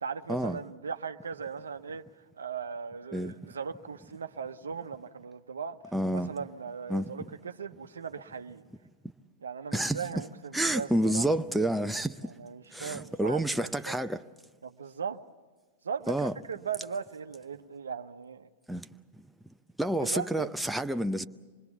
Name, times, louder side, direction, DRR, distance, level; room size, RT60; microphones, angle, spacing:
voice 1, 0.0-2.0 2.3-5.8 6.1-8.6 9.4-11.2 12.2-14.0 14.6-15.2 15.8-18.5 20.0-20.5, right 6 dB, 90° right, 0.8 m, -38 dB
voice 2, 5.9-6.3 6.9-7.1 9.7-10.2 10.5-12.3 12.7-14.2 16.1-16.3 18.7-18.8 19.8-21.3, right 1 dB, 5° right, 0.6 m, -29 dB
26.0 x 20.5 x 7.1 m
hypercardioid pair, 110°, 0 cm